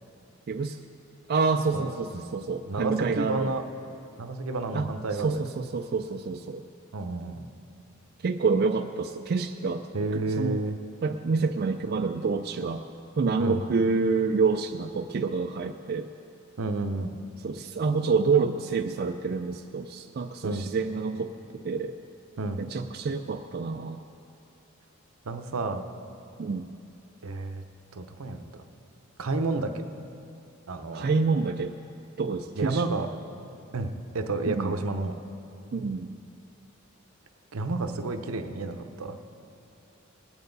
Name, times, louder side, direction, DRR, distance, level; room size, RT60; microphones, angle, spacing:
voice 1, 0.5-0.8 1.3-3.5 4.7-4.9 5.2-6.6 8.2-9.9 10.1-10.6 11.0-12.8 13.2-16.1 17.4-21.3 21.6-22.0 22.6-24.0 26.4-26.7 30.9-31.7 32.2-32.8 34.5-34.7 35.7-36.1, right 4 dB, 50° right, 5 dB, 0.3 m, -27 dB
voice 2, 2.7-3.6 4.2-5.4 6.9-7.4 9.9-10.8 13.4-13.6 16.6-17.1 20.4-20.7 22.4-22.6 25.3-25.9 27.2-27.6 27.9-28.5 29.2-29.7 30.7-31.1 32.6-33.1 33.7-35.2 37.5-39.2, right 3 dB, 80° right, 6 dB, 0.7 m, -30 dB
19.0 x 8.9 x 3.9 m, 2.6 s
head